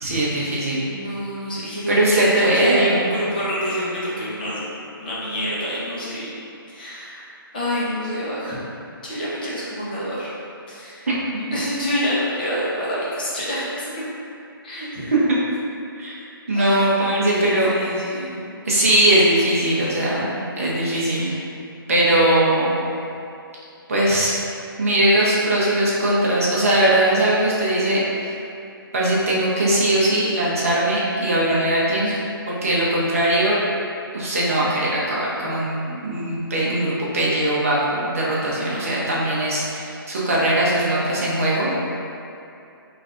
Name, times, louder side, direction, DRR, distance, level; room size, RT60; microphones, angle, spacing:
voice 1, 0.0-0.9 1.9-3.0 11.1-11.2 16.0-16.2 16.5-17.7 18.7-20.3 20.6-21.4 21.9-22.7 23.9-24.3 24.8-28.3 28.9-32.1 32.5-33.6 34.1-41.7, right 1 dB, 35° right, -7 dB, 0.7 m, -20 dB
voice 2, 0.8-4.6 5.0-6.3 6.7-7.3 7.5-8.6 9.0-10.3 10.7-11.1 11.5-13.9 14.6-15.1 16.5-18.5 32.0-32.1 39.0-39.1, equal, 25° left, -9 dB, 0.6 m, -27 dB
3.2 x 2.5 x 3.6 m, 2.6 s
hypercardioid pair, 180°, 12 cm